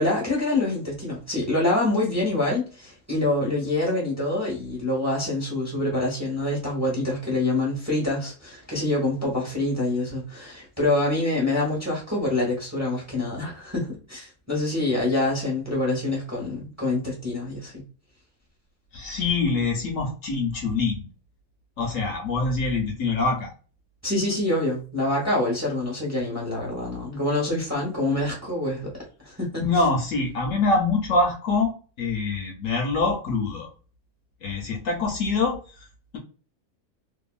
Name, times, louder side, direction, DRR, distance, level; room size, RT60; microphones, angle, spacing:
voice 1, 0.0-17.8 24.0-28.9 29.2-29.6, left 2 dB, 15° right, 0.9 m, -26 dB
voice 2, 18.9-21.1 21.8-23.5 29.6-33.7 34.4-35.6, left 3 dB, 65° left, 1.0 m, -24 dB
2.7 x 2.6 x 2.3 m
omnidirectional pair, 1.6 m